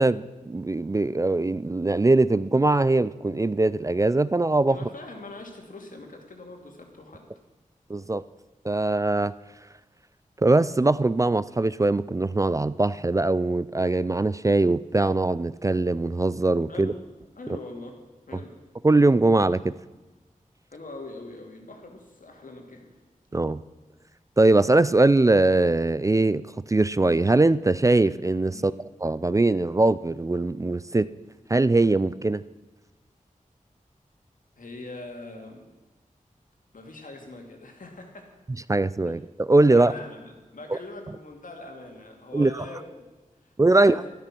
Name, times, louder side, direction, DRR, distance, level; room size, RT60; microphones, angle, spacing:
voice 1, 0.0-4.8 7.9-8.2 8.6-9.3 10.4-16.9 18.8-19.7 23.3-23.6 24.4-28.7 29.0-31.1 31.5-32.4 38.7-39.9 40.7-40.8 42.3-42.6 43.6-44.0, right 2 dB, 25° right, 17 dB, 0.3 m, -21 dB
voice 2, 4.7-7.3 16.7-17.0 17.4-18.0 18.3-18.6 20.7-22.9 28.5-28.8 34.6-35.7 36.7-38.3 39.0-39.2 39.6-42.9 43.4-44.1, left 2 dB, 75° left, 2 dB, 2.6 m, -42 dB
13.0 x 12.0 x 5.9 m, 1.2 s
wide cardioid pair, 85°, 14 cm